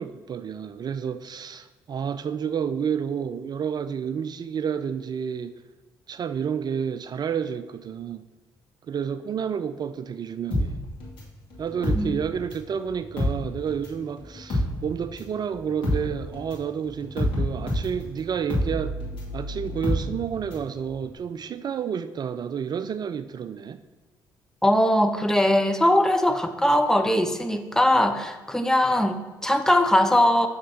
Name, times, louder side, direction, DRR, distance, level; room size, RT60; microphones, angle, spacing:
voice 1, 0.0-5.5 6.1-8.3 8.9-10.8 11.6-19.0 19.3-23.8, right 7 dB, 40° right, 12 dB, 0.3 m, -30 dB
sound 1, 10.5-12.7 13.0-20.7 21.0-21.1, left 1 dB, 50° left, 2.2 m, -28 dB
voice 2, 24.6-30.5, left 1 dB, 5° left, 7 dB, 0.6 m, -21 dB
7.3 x 6.1 x 2.9 m, 1.3 s
figure-of-eight pair, 45°, 11 cm